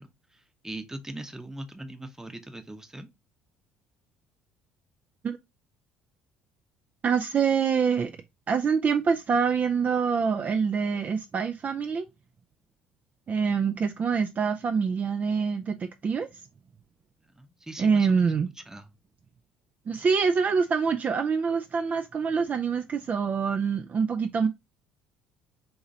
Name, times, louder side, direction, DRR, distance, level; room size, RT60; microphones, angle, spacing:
voice 1, 0.0-3.1 17.3-18.3 18.7-18.9, right 1 dB, 10° right, 0.7 m, -41 dB
voice 2, 7.0-8.1 8.5-12.1 13.3-16.3 17.8-18.5 19.9-24.5, right 6 dB, 35° right, 0.3 m, -25 dB
3.9 x 2.9 x 2.6 m
hypercardioid pair, 60°, 5 cm